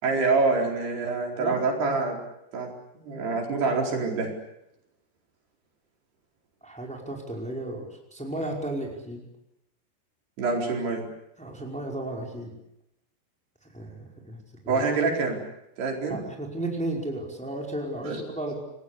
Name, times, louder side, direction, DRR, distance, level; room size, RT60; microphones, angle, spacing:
voice 1, 0.0-2.2 2.5-2.7 3.0-4.3 10.4-11.0 14.7-15.4 15.8-16.2 18.0-18.2, right 3 dB, 70° right, 1 dB, 6.5 m, -26 dB
voice 2, 6.6-9.2 11.4-12.5 13.7-14.8 16.1-18.6, right 1 dB, ahead, 0 dB, 4.8 m, -34 dB
29.0 x 19.5 x 8.4 m, 0.85 s
omnidirectional pair, 4.8 m